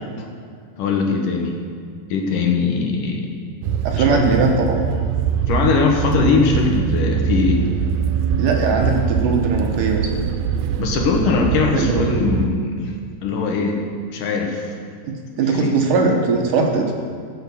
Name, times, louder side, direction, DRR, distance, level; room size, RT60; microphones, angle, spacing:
voice 1, 0.8-1.6 2.1-3.3 4.0-4.3 5.5-7.7 10.8-12.9 13.2-13.8 14.1-14.7 15.5-15.8, left 4 dB, 70° left, 1 dB, 2.5 m, -20 dB
sound 1, 3.6-12.5, right 7 dB, 90° right, 2.5 m, -23 dB
voice 2, 3.8-4.8 8.4-10.1 11.8-12.1 15.1-16.9, right 4 dB, 70° right, 1 dB, 2.3 m, -20 dB
15.5 x 7.1 x 6.9 m, 2.2 s
omnidirectional pair, 4.3 m